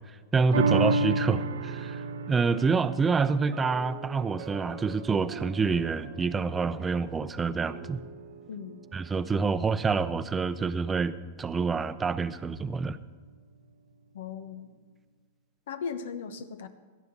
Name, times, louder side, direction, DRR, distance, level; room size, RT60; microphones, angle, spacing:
voice 1, 0.3-2.0 2.3-8.0 8.9-11.1 11.4-13.0, right 4 dB, 15° right, 14 dB, 0.6 m, -27 dB
sound 1, 0.5-7.2 7.7-7.8, right 2 dB, 85° right, 0.8 m, -32 dB
sound 2, 1.5-10.7, right 9 dB, 50° right, 1.0 m, -48 dB
voice 2, 14.1-14.7 15.7-16.7, left 6 dB, 75° left, 11 dB, 1.0 m, -37 dB
17.0 x 12.5 x 4.0 m, 1.5 s
hypercardioid pair, 120°, 0 cm